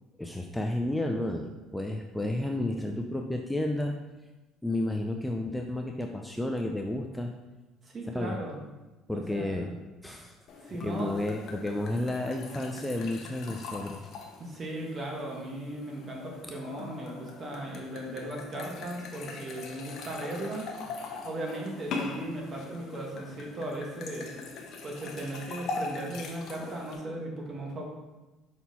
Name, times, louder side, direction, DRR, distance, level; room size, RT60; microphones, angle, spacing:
voice 1, 0.2-4.0 4.6-7.3 8.1-8.4 9.1-9.8 10.0-10.3 10.8-14.0, left 1 dB, 5° left, 3 dB, 0.4 m, -31 dB
voice 2, 7.8-8.6 9.1-9.7 10.6-11.2 14.4-20.7 21.2-24.3 24.8-27.8, right 1 dB, 35° right, -1 dB, 1.5 m, -37 dB
sound 1, 10.5-27.0, left 3 dB, 55° left, 1.0 m, -41 dB
5.6 x 4.3 x 4.1 m, 1.1 s
cardioid pair, 110°, 0 cm